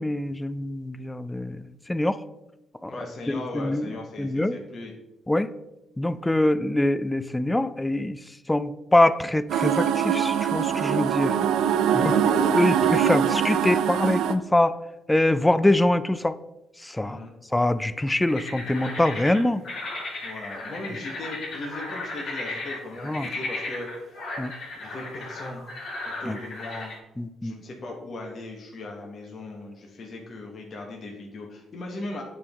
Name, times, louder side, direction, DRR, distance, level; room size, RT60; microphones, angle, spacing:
voice 1, 0.0-1.6 1.9-2.2 2.8-2.9 3.5-3.9 4.2-4.6 5.3-5.5 6.0-8.2 8.5-11.3 11.9-12.0 12.3-14.8 15.1-16.3 16.8-17.2 17.5-19.6 23.0-23.3 24.4-24.5 26.3-26.4 27.2-27.5, left 1 dB, 10° left, 15 dB, 0.3 m, -24 dB
voice 2, 2.9-4.9 11.9-12.6 17.0-17.3 20.2-24.2 24.7-25.7 26.2-26.9 27.4-32.2, left 2 dB, 45° left, 0 dB, 1.1 m, -38 dB
sound 1, 9.5-14.3, right 8 dB, 85° right, 0.4 m, -23 dB
sound 2, 18.3-27.0, left 2 dB, 60° left, 2.1 m, -35 dB
8.6 x 3.5 x 3.5 m, 0.95 s
cardioid pair, 90°, 0 cm